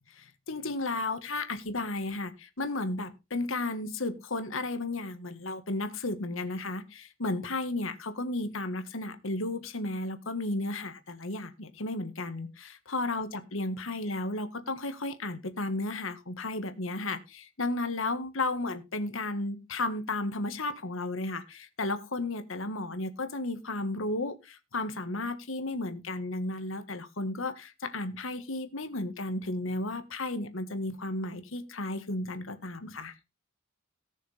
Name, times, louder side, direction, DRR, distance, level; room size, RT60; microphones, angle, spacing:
voice 1, 0.2-33.1, left 2 dB, 70° left, 9 dB, 1.6 m, -33 dB
18.5 x 6.4 x 3.4 m, 0.26 s
head